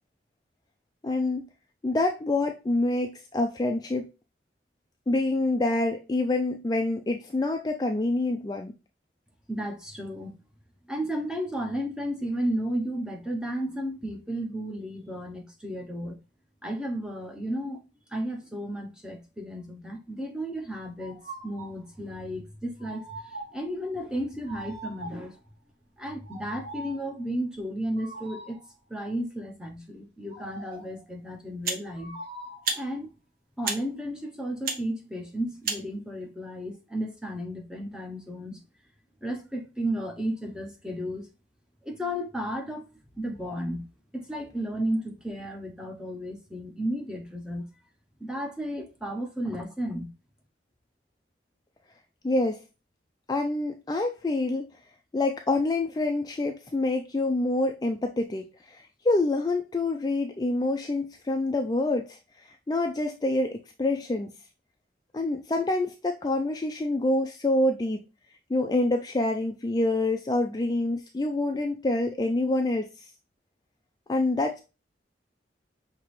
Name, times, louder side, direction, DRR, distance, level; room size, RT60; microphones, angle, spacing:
voice 1, 1.0-1.5 1.8-4.1 5.1-8.7 52.2-52.6 53.3-54.7 55.1-64.3 65.1-68.0 68.5-73.1 74.1-74.6, left 2 dB, 20° left, 0.4 m, -27 dB
voice 2, 9.5-10.4 10.9-16.2 16.6-17.8 18.1-21.2 21.4-25.4 26.0-28.6 28.9-32.2 32.7-33.1 33.6-38.6 39.2-41.3 41.8-42.9 43.2-43.8 44.1-47.7 48.2-50.1, equal, 5° right, 0.8 m, -33 dB
sound 1, 21.0-21.8 22.8-23.7 24.5-25.4 26.2-27.1 28.0-28.7 30.3-31.0 32.0-32.7, right 1 dB, 80° right, 1.5 m, -42 dB
sound 2, 30.7-30.8 31.6-31.9 32.6-32.8 33.6-33.8 34.6-34.8 35.6-35.8, right 4 dB, 50° right, 0.9 m, -30 dB
5.9 x 2.9 x 3.1 m
head